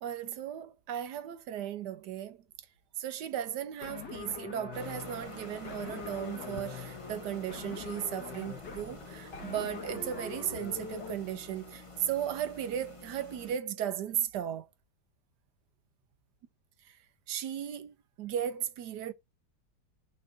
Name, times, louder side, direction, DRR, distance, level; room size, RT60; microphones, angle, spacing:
voice 1, 0.0-2.4 3.0-14.7 16.8-17.0 17.3-19.1, right 10 dB, 70° right, 1.2 m, -36 dB
sound 1, 3.8-11.2, left 6 dB, 70° left, 2.1 m, -44 dB
sound 2, 4.7-13.6, left 2 dB, 20° left, 0.9 m, -47 dB
14.5 x 5.3 x 2.6 m
omnidirectional pair, 1.9 m